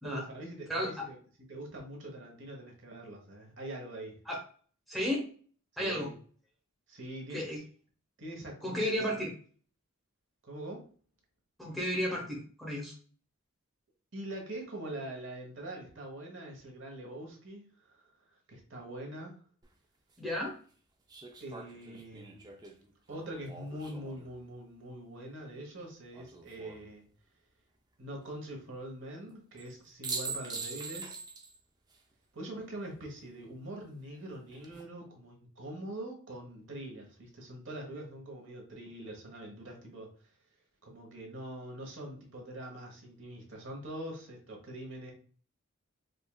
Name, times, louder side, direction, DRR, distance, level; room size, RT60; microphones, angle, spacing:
voice 1, 0.0-1.2 1.5-4.2 5.8-6.1 6.9-7.4 8.2-9.0 10.4-10.8 14.1-18.1 18.5-19.4 21.4-22.5 23.1-27.1 28.0-31.2 32.3-40.1 40.8-45.1, right 1 dB, 55° right, 1 dB, 1.0 m, -43 dB
voice 2, 4.9-5.3 5.8-6.1 7.3-7.6 8.6-9.3 11.6-12.9 20.2-20.5, equal, ahead, -3 dB, 0.7 m, -33 dB
sound 1, 19.6-19.7 21.1-24.3 26.1-26.8 29.6-29.7 30.0-31.6 31.9-32.0 34.3-34.8, right 4 dB, 20° right, 0.4 m, -42 dB
5.0 x 2.4 x 2.2 m, 0.44 s
head